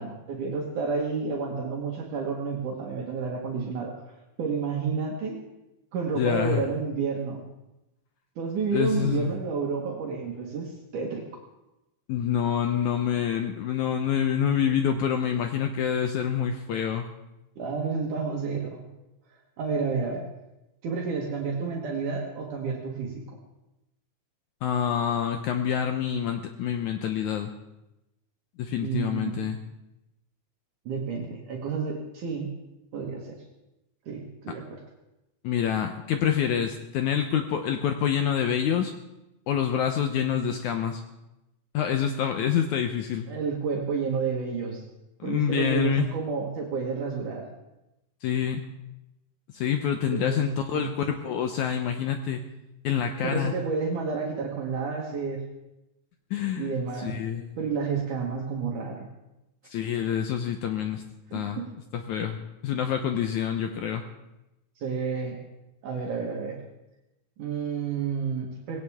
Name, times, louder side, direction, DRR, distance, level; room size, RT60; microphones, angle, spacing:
voice 1, 0.0-3.9 4.4-5.4 5.9-7.4 8.4-11.2 17.6-18.8 19.6-20.3 20.8-23.2 28.8-29.5 30.9-32.5 32.9-33.4 34.1-34.6 43.3-44.8 45.2-47.5 50.1-50.9 53.2-55.4 56.6-57.1 57.6-59.1 61.3-61.4 64.8-65.4 65.8-66.6 67.4-68.8, right 5 dB, 65° right, -1 dB, 2.9 m, -30 dB
voice 2, 6.2-6.6 8.7-9.3 12.1-17.1 24.6-27.5 28.6-29.6 35.4-38.9 39.5-41.0 41.7-43.3 45.2-46.2 48.2-48.6 49.5-52.4 52.8-53.5 56.3-56.7 57.0-57.5 59.7-61.0 61.3-61.6 61.9-64.0, left 8 dB, 75° left, 6 dB, 1.9 m, -27 dB
19.0 x 17.0 x 3.5 m, 0.94 s
omnidirectional pair, 4.1 m